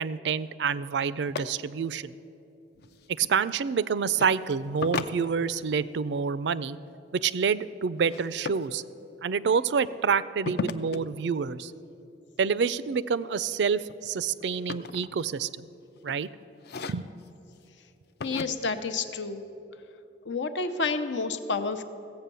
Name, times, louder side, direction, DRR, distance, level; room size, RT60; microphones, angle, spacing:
voice 1, 0.0-2.1 3.2-6.8 7.1-8.8 9.2-11.7 12.4-15.7 16.0-16.3 16.9-17.1, right 6 dB, 70° right, 17 dB, 0.4 m, -27 dB
sound 1, 1.3-1.4 2.7-3.3 4.1-4.3 4.8-5.8 8.0-8.7 10.5-11.0 12.9-13.2 13.6-15.5 16.0-16.2 16.6-17.3 18.2-18.5, left 4 dB, 60° left, 0.5 m, -36 dB
voice 2, 18.2-19.4 20.3-21.8, left 4 dB, 85° left, 9 dB, 0.8 m, -29 dB
15.5 x 8.0 x 6.8 m, 2.9 s
head